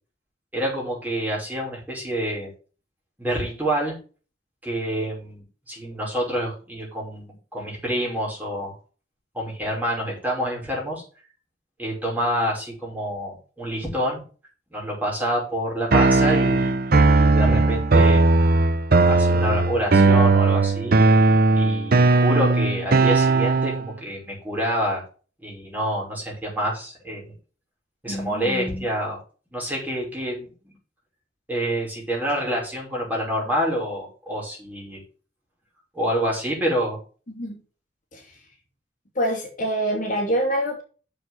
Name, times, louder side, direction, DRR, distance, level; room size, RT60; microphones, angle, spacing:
voice 1, 0.5-2.5 3.2-3.9 4.6-8.7 9.3-11.0 11.8-14.2 14.7-18.2 19.0-20.9 21.5-25.0 25.4-27.3 28.0-29.2 29.5-30.7 31.5-35.0 35.9-37.0, equal, 10° right, -4 dB, 5.4 m, -27 dB
sound 1, 15.9-23.9, right 3 dB, 55° right, 0.7 m, -18 dB
voice 2, 28.1-28.9 37.3-37.6 38.1-38.4 39.1-40.8, equal, 50° left, 0 dB, 2.8 m, -26 dB
7.1 x 6.9 x 6.1 m, 0.37 s
head